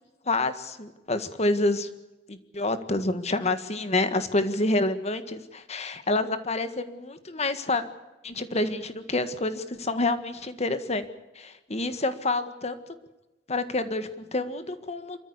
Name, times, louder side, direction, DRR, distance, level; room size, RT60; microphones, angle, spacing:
voice 1, 0.2-1.9 2.3-7.8 8.2-11.1 11.3-12.7 13.5-15.2, left 2 dB, 40° left, 10 dB, 1.7 m, -28 dB
26.0 x 14.0 x 8.3 m, 1.1 s
head